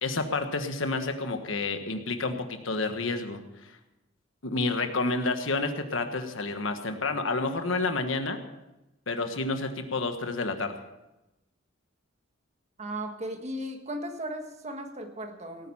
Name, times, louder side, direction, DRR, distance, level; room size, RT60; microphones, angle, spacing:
voice 1, 0.0-3.4 4.4-8.4 9.1-10.7, left 3 dB, 75° left, 7 dB, 1.4 m, -29 dB
voice 2, 12.8-15.7, right 1 dB, 35° right, 5 dB, 1.6 m, -36 dB
18.0 x 9.4 x 5.6 m, 0.96 s
head